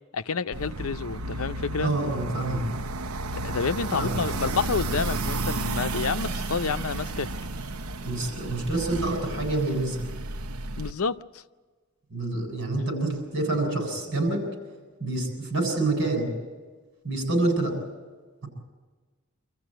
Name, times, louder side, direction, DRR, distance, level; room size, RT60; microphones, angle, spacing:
voice 1, 0.1-1.9 3.4-7.3 10.8-11.4, left 5 dB, 75° left, 0.7 m, -29 dB
sound 1, 0.5-10.9, right 2 dB, 90° right, 0.8 m, -32 dB
voice 2, 1.8-2.6 3.9-4.2 8.0-10.0 12.1-14.4 15.0-16.3 17.0-17.8 18.4-18.5, right 2 dB, 60° right, 7.6 m, -27 dB
26.0 x 14.5 x 9.1 m
head